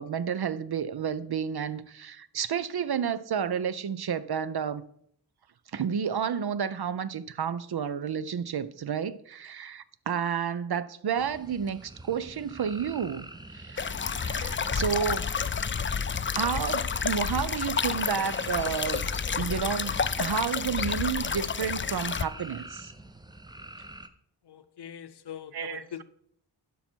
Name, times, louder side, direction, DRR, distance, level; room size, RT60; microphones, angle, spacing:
voice 1, 0.0-4.8 5.7-13.3 13.5-15.3 16.3-19.0 19.4-22.9 25.5-26.0, right 7 dB, 65° right, 0.6 m, -31 dB
sound 1, 11.2-24.1, right 2 dB, 10° right, 0.6 m, -47 dB
sound 2, 13.8-22.2, left 6 dB, 30° left, 0.4 m, -30 dB
voice 2, 24.5-26.0, left 9 dB, 70° left, 0.7 m, -42 dB
11.5 x 5.5 x 4.4 m
wide cardioid pair, 70°, 42 cm